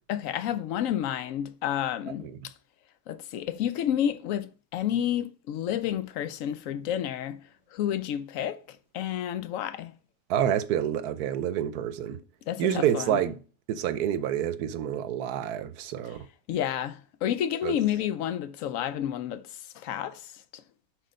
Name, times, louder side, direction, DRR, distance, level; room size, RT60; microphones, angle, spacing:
voice 1, 0.1-2.5 3.1-7.4 7.7-10.0 12.5-13.2 16.5-20.6, left 10 dB, 70° left, 0.9 m, -30 dB
voice 2, 10.3-12.2 12.6-13.4 13.7-16.3 17.6-17.8, right 10 dB, 85° right, 1.2 m, -28 dB
6.3 x 4.3 x 5.1 m
omnidirectional pair, 1.6 m